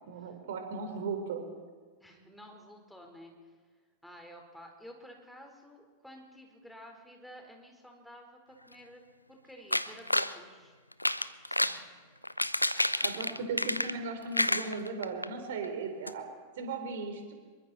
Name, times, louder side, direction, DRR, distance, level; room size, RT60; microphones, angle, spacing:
voice 1, 0.1-1.4 11.7-11.8 13.0-16.2 16.6-17.3, right 4 dB, 55° right, 5 dB, 4.2 m, -37 dB
voice 2, 2.0-3.3 4.0-8.4 8.7-9.0 9.3-10.8 13.3-13.4, equal, ahead, 2 dB, 4.7 m, -51 dB
sound 1, 9.7-10.3 10.9-11.8 12.2-14.1 14.3-15.3 15.6-15.7 16.1-16.2, left 1 dB, 85° left, 0.6 m, -29 dB
26.5 x 23.5 x 4.5 m, 1.5 s
figure-of-eight pair, 90°, 0 cm